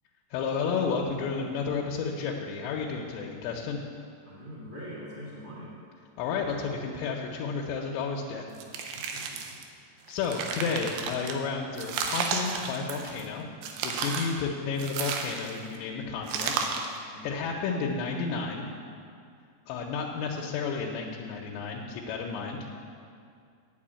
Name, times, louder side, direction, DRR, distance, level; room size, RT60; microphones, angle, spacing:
voice 1, 0.3-3.8 6.2-8.5 10.1-13.5 13.8-16.6 17.2-18.7 19.7-22.6, left 5 dB, 85° left, -1 dB, 3.0 m, -31 dB
voice 2, 4.2-5.7 8.9-9.4 9.8-10.2 17.1-17.4, equal, 45° left, -6 dB, 0.6 m, -44 dB
sound 1, 8.6-9.6 10.1-11.3 11.8-13.3 13.6-14.4 14.8-15.7 16.3-17.0, right 5 dB, 80° right, 3.0 m, -33 dB
9.4 x 6.9 x 8.7 m, 2.3 s
omnidirectional pair, 4.9 m